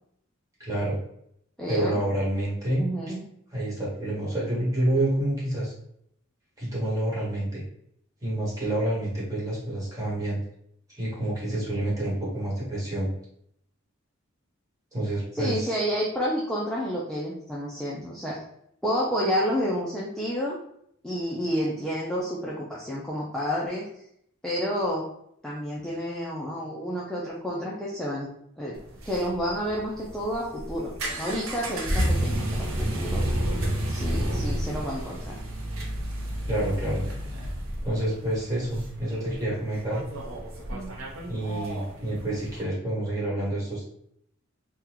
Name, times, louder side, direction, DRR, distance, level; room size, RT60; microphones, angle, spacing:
voice 1, 0.6-1.0 1.7-2.8 3.5-5.7 6.6-7.6 8.2-10.4 10.9-13.1 14.9-15.7 36.5-37.0 37.8-40.0 41.3-43.8, right 1 dB, 15° right, -7 dB, 1.3 m, -28 dB
voice 2, 1.6-2.0 2.8-3.2 15.3-18.4 18.8-20.6 21.0-23.9 24.4-25.0 25.4-28.3 28.6-28.8 29.1-33.3 33.9-35.4 40.7-40.9, equal, 5° left, -6 dB, 0.4 m, -30 dB
sound 1, 28.8-42.6, right 1 dB, 80° right, 0.8 m, -31 dB
3.7 x 2.2 x 2.9 m, 0.72 s
head